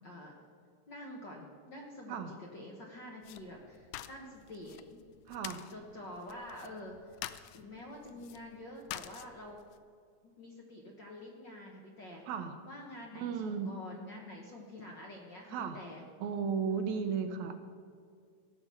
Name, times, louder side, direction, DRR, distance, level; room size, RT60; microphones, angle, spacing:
voice 1, 0.0-0.3 0.9-5.0 5.7-7.2 7.5-9.6 10.4-12.3 12.7-16.0, left 1 dB, 55° left, 0 dB, 1.4 m, -47 dB
sound 1, 3.2-9.8, left 13 dB, 80° left, 1.8 m, -48 dB
voice 2, 5.3-5.6 12.3-12.5 13.2-14.1 15.5-15.8 16.2-17.5, right 6 dB, 75° right, 8 dB, 2.1 m, -35 dB
16.5 x 6.1 x 6.9 m, 2.1 s
omnidirectional pair, 3.5 m